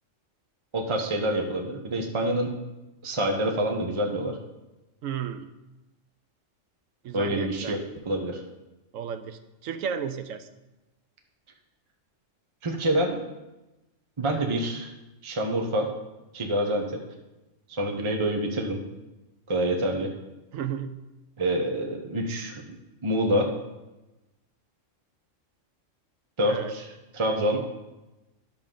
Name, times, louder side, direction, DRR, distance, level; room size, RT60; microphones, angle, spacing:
voice 1, 0.7-2.5 3.0-4.4 7.1-7.8 8.0-8.4 12.6-13.2 14.2-14.9 15.2-15.9 16.3-17.0 17.7-18.8 19.5-20.1 21.4-22.6 23.0-23.5 26.4-26.9 27.1-27.6, right 1 dB, 25° right, 2 dB, 0.9 m, -26 dB
voice 2, 5.0-5.5 7.0-7.9 8.9-10.5 20.5-21.0 26.5-26.7, right 8 dB, 90° right, 10 dB, 1.0 m, -33 dB
10.5 x 6.7 x 3.8 m, 1.0 s
omnidirectional pair, 1.3 m